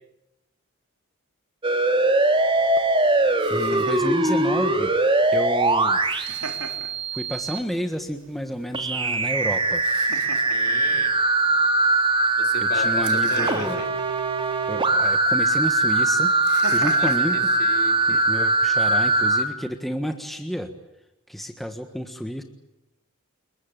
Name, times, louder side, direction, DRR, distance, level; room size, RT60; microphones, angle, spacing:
sound 1, 1.6-7.6 8.7-19.4, right 2 dB, 25° right, 2.9 m, -21 dB
Laughter, 2.4-18.4, right 4 dB, 90° right, 3.9 m, -41 dB
voice 1, 3.5-5.0 5.3-6.0 7.1-9.8 12.6-13.8 14.7-16.3 16.7-17.5 18.1-20.7 21.3-22.4, equal, ahead, 5 dB, 1.5 m, -30 dB
voice 2, 10.5-11.2 12.4-13.9 17.0-18.2, left 2 dB, 45° left, 4 dB, 4.2 m, -36 dB
29.0 x 22.0 x 8.9 m, 0.92 s
head